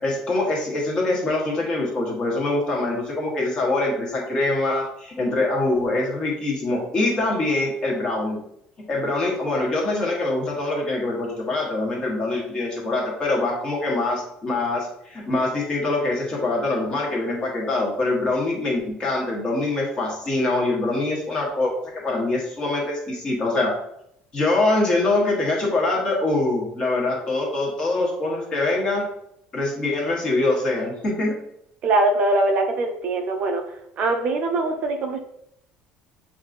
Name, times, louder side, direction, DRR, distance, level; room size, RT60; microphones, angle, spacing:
voice 1, 0.0-8.4 8.9-23.7 24.3-29.0 29.5-31.4, left 2 dB, 25° left, -2 dB, 1.1 m, -24 dB
voice 2, 31.8-33.6 34.0-35.2, right 2 dB, 40° right, 4 dB, 0.4 m, -22 dB
6.4 x 2.5 x 2.5 m, 0.76 s
cardioid pair, 170°, 3 cm